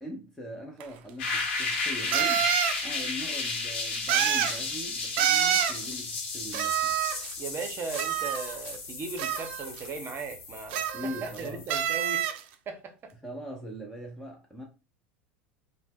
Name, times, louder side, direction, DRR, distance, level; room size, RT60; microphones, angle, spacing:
voice 1, 0.0-2.5 2.8-7.0 10.9-11.6 13.2-14.6, equal, 5° left, 0.7 m, -41 dB
sound 1, 0.8-0.9 2.1-2.8 4.1-4.6 5.2-5.8 6.5-7.3 7.9-8.7 9.2-9.8 10.7-11.4 11.7-12.4, right 10 dB, 70° right, 0.3 m, -27 dB
sound 2, 1.2-11.9, left 3 dB, 75° left, 0.9 m, -34 dB
voice 2, 7.4-12.2 12.7-13.1, right 4 dB, 40° right, 0.7 m, -38 dB
2.0 x 2.0 x 3.5 m
hypercardioid pair, 85°, 6 cm